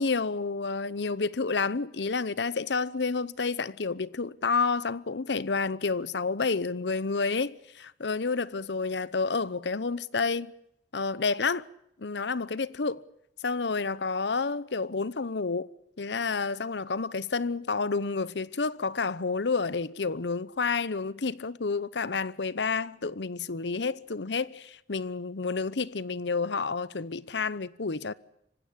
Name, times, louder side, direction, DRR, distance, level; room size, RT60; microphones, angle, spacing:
voice 1, 0.0-10.5 10.9-11.6 12.0-13.0 13.4-15.7 16.0-28.1, left 4 dB, 85° left, 0.9 m, -30 dB
25.5 x 16.0 x 10.0 m
head